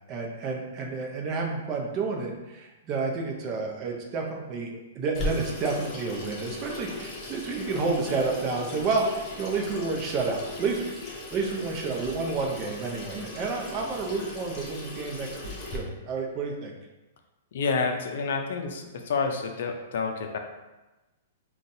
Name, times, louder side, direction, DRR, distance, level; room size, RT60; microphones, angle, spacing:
voice 1, 0.1-16.7, right 4 dB, 35° right, 0 dB, 0.6 m, -30 dB
Water tap faucet / Sink (filling or washing), 5.1-15.8, left 2 dB, 30° left, 0.7 m, -37 dB
voice 2, 17.5-20.4, left 4 dB, 70° left, 4 dB, 0.4 m, -29 dB
3.8 x 2.3 x 2.6 m, 1.1 s
hypercardioid pair, 125°, 0 cm